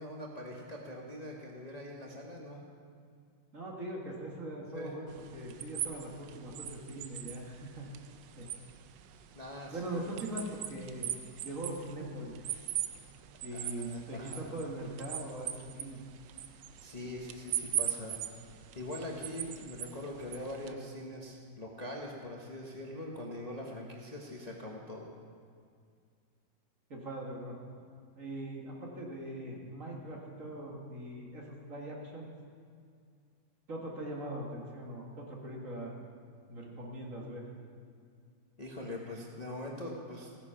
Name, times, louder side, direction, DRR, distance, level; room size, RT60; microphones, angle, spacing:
voice 1, 0.0-2.6 4.7-4.9 9.3-10.0 13.5-14.4 16.8-18.2 18.7-25.1 38.6-40.3, left 1 dB, 25° left, -2 dB, 1.0 m, -42 dB
voice 2, 3.5-7.9 8.3-8.5 9.7-11.1 11.4-12.5 13.4-16.0 26.9-27.6 28.2-32.3 33.7-35.9 36.5-37.4, right 1 dB, 45° right, -2 dB, 2.2 m, -41 dB
sound 1, 5.1-20.7, right 11 dB, 90° right, 1.4 m, -41 dB
16.0 x 9.7 x 5.7 m, 2.2 s
omnidirectional pair, 2.0 m